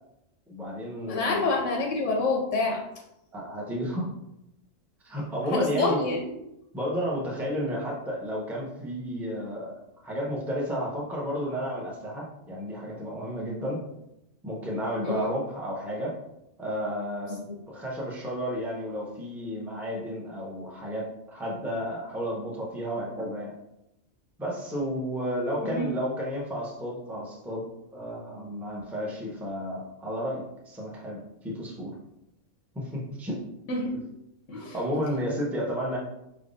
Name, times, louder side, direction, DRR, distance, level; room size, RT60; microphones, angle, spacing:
voice 1, 0.5-1.5 3.3-4.1 5.0-6.0 6.7-9.7 10.0-13.8 14.4-16.2 16.6-23.5 24.4-27.6 27.9-32.0 32.7-33.4 34.5-36.0, equal, ahead, -3 dB, 0.6 m, -32 dB
voice 2, 1.1-2.8 5.5-6.3 15.0-15.3 17.5-17.6 25.6-25.9 33.7-34.0 34.5-34.7, left 3 dB, 75° left, 0 dB, 0.9 m, -27 dB
4.7 x 3.4 x 2.6 m, 0.87 s
omnidirectional pair, 1.3 m